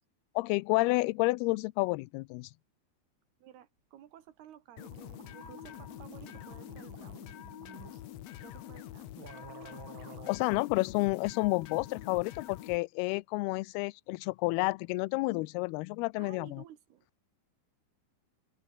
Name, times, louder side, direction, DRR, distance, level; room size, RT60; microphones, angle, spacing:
voice 1, 0.4-2.5 10.3-16.6, left 23 dB, 90° left, 2.6 m, -30 dB
voice 2, 3.4-7.3 7.9-8.0 8.4-9.1 16.2-17.1, right 11 dB, 85° right, 3.8 m, -54 dB
sound 1, 4.5-4.6 4.8-8.0 8.7-8.8 9.1-10.3, right 8 dB, 45° right, 1.7 m, -52 dB
sound 2, 4.8-12.8, left 12 dB, 70° left, 1.6 m, -46 dB
omnidirectional pair, 4.4 m